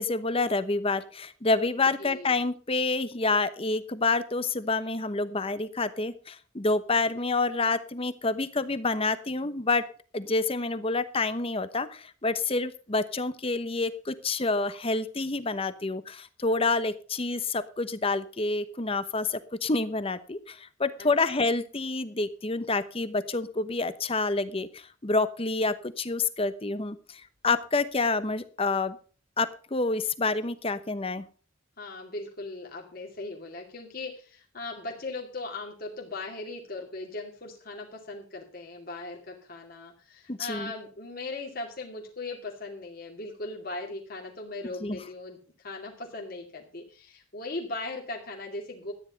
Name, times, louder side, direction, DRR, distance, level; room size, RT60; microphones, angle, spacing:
voice 1, 0.0-9.8 10.1-29.0 29.4-31.2 40.3-40.7 44.8-45.0, left 3 dB, 30° left, 13 dB, 0.9 m, -28 dB
voice 2, 2.0-2.3 21.0-21.4 31.8-48.9, left 2 dB, 45° left, 0 dB, 2.4 m, -39 dB
13.0 x 10.0 x 5.1 m, 0.40 s
head